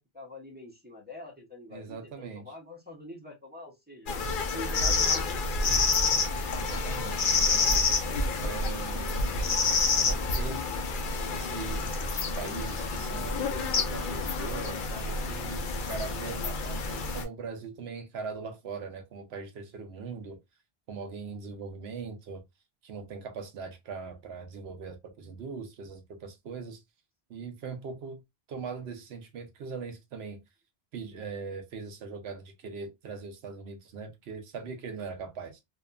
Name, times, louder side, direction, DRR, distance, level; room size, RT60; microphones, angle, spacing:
voice 1, 0.0-5.4, left 1 dB, 10° right, 0.8 m, -45 dB
voice 2, 1.7-2.5 6.5-7.8 8.4-9.4 10.0-10.6 11.3-20.4 20.9-22.4 22.8-26.8 27.3-28.2 28.5-30.4 30.9-35.6, right 5 dB, 85° right, 0.9 m, -41 dB
sound 1, 4.1-17.2, left 4 dB, 60° left, 0.7 m, -28 dB
2.7 x 2.3 x 2.2 m
omnidirectional pair, 1.0 m